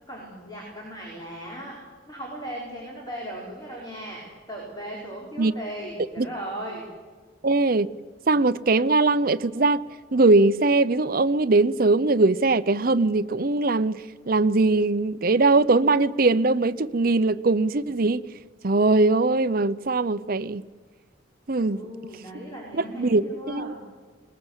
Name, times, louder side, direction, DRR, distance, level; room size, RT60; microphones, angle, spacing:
voice 1, 0.1-1.8 2.1-6.8 21.6-23.8, right 1 dB, 20° left, 4.9 m, -37 dB
voice 2, 7.4-7.9 8.3-9.8 10.1-18.2 18.6-20.6 21.5-21.8 23.0-23.7, right 3 dB, 50° right, 0.7 m, -21 dB
20.5 x 20.5 x 8.2 m
head